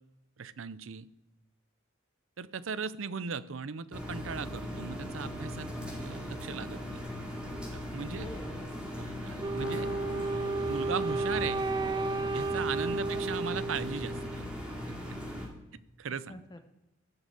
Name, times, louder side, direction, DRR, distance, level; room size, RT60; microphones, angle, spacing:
voice 1, 0.4-1.1 2.4-5.7 6.0-7.0 7.7-8.3 8.9-9.9 10.3-11.7 12.3-14.4 14.9-15.2 16.0-16.4, right 6 dB, 70° right, 16 dB, 0.6 m, -38 dB
sound 1, 3.9-15.5, left 1 dB, 5° right, 2.3 m, -39 dB
voice 2, 8.2-8.6 9.2-9.6 13.1-13.5 16.1-16.6, left 1 dB, 20° left, 6 dB, 0.8 m, -47 dB
Wind instrument woodwind instrument, 9.4-14.5, right 3 dB, 20° right, 0.3 m, -33 dB
Piano, 9.6-12.0, left 2 dB, 65° left, 0.8 m, -46 dB
13.0 x 6.5 x 7.9 m, 0.94 s
head